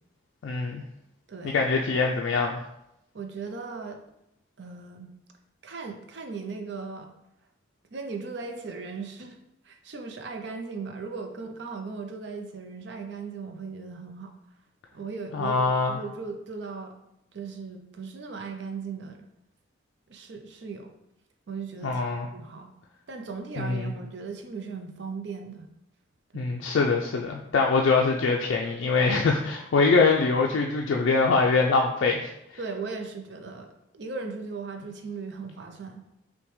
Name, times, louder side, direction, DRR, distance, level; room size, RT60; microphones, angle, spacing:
voice 1, 0.4-0.8 1.5-2.6 15.3-16.0 21.8-22.3 23.6-23.9 26.3-32.3, left 4 dB, 70° left, 0 dB, 0.3 m, -23 dB
voice 2, 3.1-4.0 4.6-5.1 5.6-7.1 7.9-9.4 9.6-14.3 14.9-17.0 17.3-19.2 20.1-20.9 21.5-22.7 23.1-25.7 26.3-26.6 32.6-36.0, right 4 dB, 60° right, 5 dB, 0.5 m, -37 dB
5.7 x 2.1 x 3.2 m, 0.84 s
head